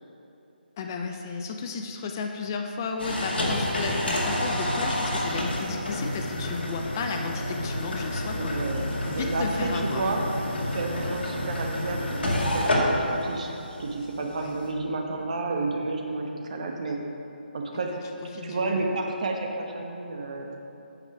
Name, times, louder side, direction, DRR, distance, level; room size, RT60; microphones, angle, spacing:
voice 1, 0.8-8.5 9.0-10.1 14.4-14.6 17.8-17.9 18.3-18.9, left 4 dB, 20° left, 3 dB, 0.3 m, -33 dB
sound 1, 3.0-14.7, left 1 dB, 70° left, 2.0 m, -29 dB
voice 2, 8.3-10.2 10.7-13.5 13.8-17.0 17.5-17.9 18.4-20.6, right 3 dB, 40° right, 2 dB, 1.0 m, -31 dB
9.0 x 5.4 x 5.8 m, 2.9 s
hypercardioid pair, 170°, 6 cm